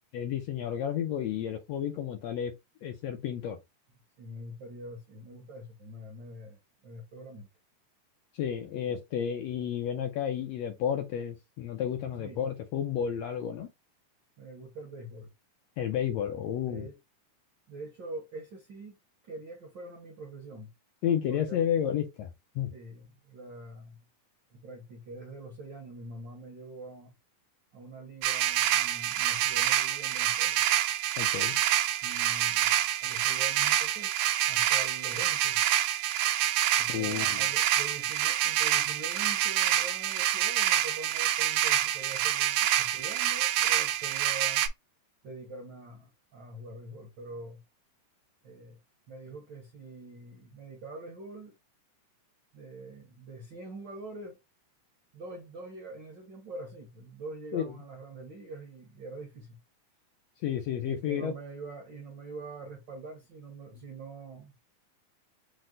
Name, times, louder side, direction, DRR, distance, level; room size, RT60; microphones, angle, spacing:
voice 1, 0.1-2.5 2.8-3.6 8.3-13.7 15.8-16.9 21.0-22.3 22.5-22.7 31.2-31.6 36.9-37.4 57.5-57.7 60.4-61.3, left 9 dB, 80° left, 1.5 m, -31 dB
voice 2, 4.2-7.5 12.2-12.4 14.4-15.3 16.6-17.0 17.7-18.9 19.2-20.7 21.3-21.7 22.7-24.0 24.5-27.1 27.7-30.6 32.0-32.7 33.0-34.1 34.4-35.6 36.8-44.6 45.2-47.6 48.4-48.8 49.1-51.5 52.5-54.4 55.1-59.6 60.8-64.6, right 2 dB, 70° right, 1.0 m, -44 dB
sound 1, 28.2-44.7, right 12 dB, 85° right, 2.1 m, -27 dB
6.1 x 2.1 x 3.8 m
omnidirectional pair, 3.7 m